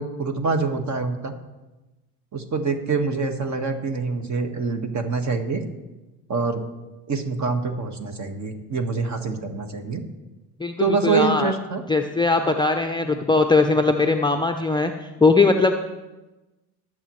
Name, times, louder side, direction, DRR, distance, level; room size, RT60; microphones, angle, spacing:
voice 1, 0.0-1.3 2.3-5.6 6.3-6.6 7.1-10.0 10.8-11.8, right 4 dB, 40° right, 6 dB, 1.7 m, -25 dB
voice 2, 10.6-11.5 11.9-15.7, left 3 dB, 10° left, 4 dB, 0.6 m, -20 dB
20.0 x 7.8 x 3.2 m, 1.1 s
hypercardioid pair, 75°, 46 cm